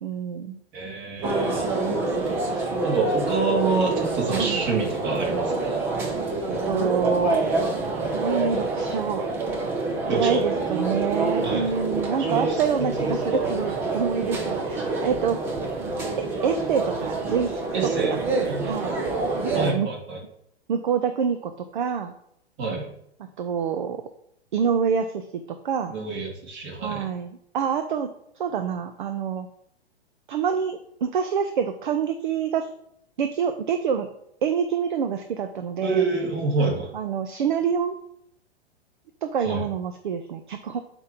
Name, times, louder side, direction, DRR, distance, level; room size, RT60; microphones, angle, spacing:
voice 1, 0.0-0.6 4.4-4.6 6.7-7.4 8.1-9.2 10.1-15.4 16.4-17.6 18.1-18.2 18.6-19.0 19.5-19.9 20.7-22.1 23.2-24.0 24.5-25.9 26.8-28.1 28.4-29.5 30.3-32.7 33.2-34.1 34.4-36.1 36.9-37.9 39.2-40.8, right 7 dB, 50° right, 8 dB, 0.6 m, -26 dB
voice 2, 0.7-5.8 10.1-10.4 11.4-11.7 12.3-12.9 17.7-18.2 18.4-18.7 19.5-20.2 22.6-22.9 25.9-27.0 35.8-36.9 39.4-39.6, right 4 dB, 35° right, -1 dB, 2.3 m, -27 dB
sound 1, 1.2-19.7, right 3 dB, 5° right, 0.4 m, -27 dB
8.0 x 3.0 x 5.1 m, 0.74 s
figure-of-eight pair, 110°, 32 cm